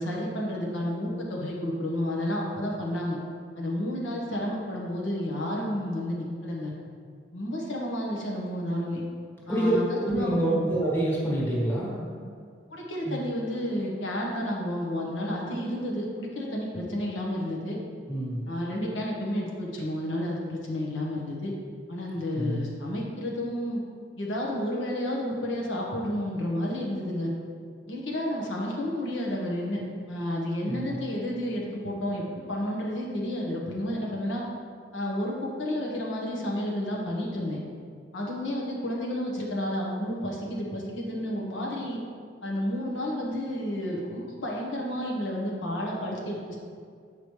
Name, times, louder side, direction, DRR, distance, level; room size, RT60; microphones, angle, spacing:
voice 1, 0.0-3.2 3.5-6.7 7.3-9.0 9.5-10.7 12.7-17.8 18.5-21.5 21.9-23.8 24.2-27.3 27.9-34.4 34.9-37.6 38.1-42.0 42.4-46.6, left 1 dB, 85° left, -3 dB, 1.2 m, -31 dB
voice 2, 9.5-12.1 13.0-13.3 18.1-18.4 22.3-22.7 30.7-30.9, right 1 dB, 10° left, -5 dB, 1.5 m, -27 dB
8.6 x 5.0 x 3.2 m, 2.1 s
head